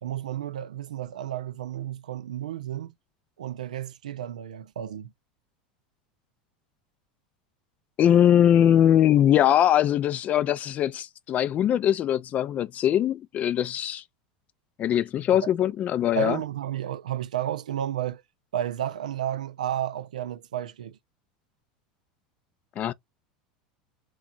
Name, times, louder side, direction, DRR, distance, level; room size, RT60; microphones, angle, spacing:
voice 1, 0.0-2.9 3.4-5.1 15.4-15.5 16.1-18.2 18.5-21.0, right 11 dB, 85° right, 0.4 m, -32 dB
voice 2, 8.0-14.0 14.8-16.4 22.8-22.9, left 10 dB, 40° left, 0.4 m, -21 dB
2.9 x 2.3 x 3.8 m
hypercardioid pair, 95°, 4 cm